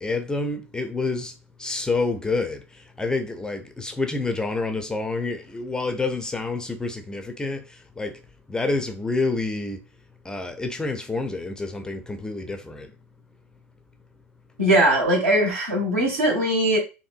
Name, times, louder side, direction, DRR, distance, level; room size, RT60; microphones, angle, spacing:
voice 1, 0.0-8.2 8.5-9.8 10.2-12.9, left 3 dB, 10° left, 0.4 m, -28 dB
voice 2, 14.6-16.8, right 1 dB, 70° right, 1.7 m, -20 dB
4.3 x 2.6 x 2.5 m
figure-of-eight pair, 75°, 8 cm